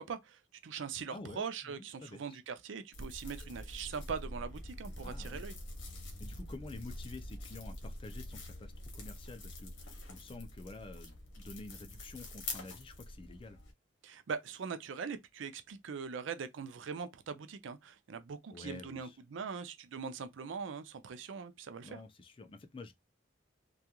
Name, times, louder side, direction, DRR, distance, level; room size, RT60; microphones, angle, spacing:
voice 1, 0.0-5.6 14.0-22.0, right 6 dB, 80° right, 0.4 m, -42 dB
voice 2, 1.1-2.4 5.0-5.4 6.2-13.6 18.5-19.2 21.8-22.9, left 3 dB, 25° left, 0.4 m, -49 dB
sound 1, 2.9-13.7, left 1 dB, 70° left, 0.9 m, -45 dB
2.9 x 2.3 x 2.3 m
head